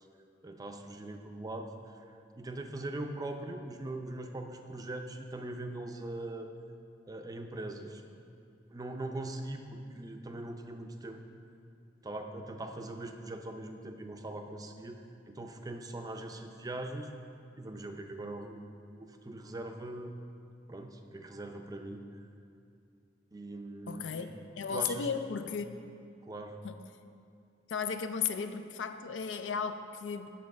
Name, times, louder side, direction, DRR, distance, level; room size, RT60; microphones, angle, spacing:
voice 1, 0.4-2.0 2.4-6.5 7.1-8.0 8.7-11.2 12.0-17.1 17.6-20.2 20.7-22.0 23.3-24.3 24.7-25.1 26.2-26.6, right 2 dB, 20° right, 5 dB, 0.4 m, -41 dB
voice 2, 23.9-24.3 24.5-25.8 26.6-26.8 27.7-30.3, left 6 dB, 80° left, 9 dB, 0.4 m, -35 dB
8.3 x 4.2 x 6.4 m, 2.4 s
head